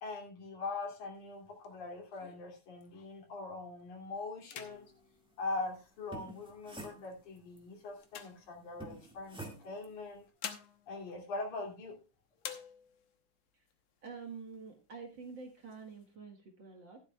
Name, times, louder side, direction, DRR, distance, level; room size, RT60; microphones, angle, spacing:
voice 1, 0.0-4.9 5.4-10.2 10.9-12.0, left 3 dB, 85° left, 1 dB, 4.2 m, -42 dB
sound 1, 1.2-3.3 3.8-4.0 4.4-6.3 7.0-9.1 10.0-12.0 12.4-13.2 13.7-13.8 14.1-14.7 15.2-16.1, left 9 dB, 65° left, 2.1 m, -50 dB
sound 2, 5.9-7.6 8.8-9.9, right 2 dB, ahead, 1.3 m, -48 dB
voice 2, 14.0-17.0, right 5 dB, 45° right, 2 dB, 1.9 m, -47 dB
14.0 x 11.5 x 2.3 m, 0.30 s
omnidirectional pair, 3.4 m